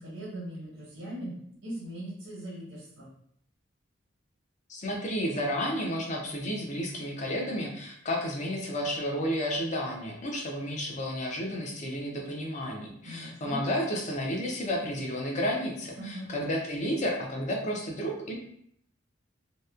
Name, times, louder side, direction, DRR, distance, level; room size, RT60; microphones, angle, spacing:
voice 1, 0.0-3.1 13.0-13.6 15.9-16.3, right 1 dB, 80° right, -7 dB, 0.8 m, -40 dB
voice 2, 4.7-18.4, equal, 40° left, 0 dB, 0.5 m, -32 dB
2.8 x 2.1 x 2.3 m, 0.68 s
head